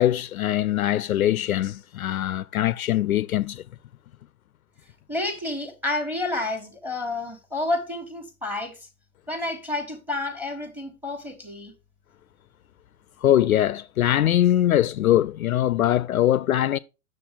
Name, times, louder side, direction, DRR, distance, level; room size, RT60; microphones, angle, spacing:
voice 1, 0.0-3.6 13.2-16.8, left 12 dB, 65° left, 0.5 m, -22 dB
voice 2, 5.1-8.9 9.3-11.7, left 2 dB, 5° right, 1.4 m, -30 dB
8.4 x 6.8 x 3.9 m
figure-of-eight pair, 110°, 46 cm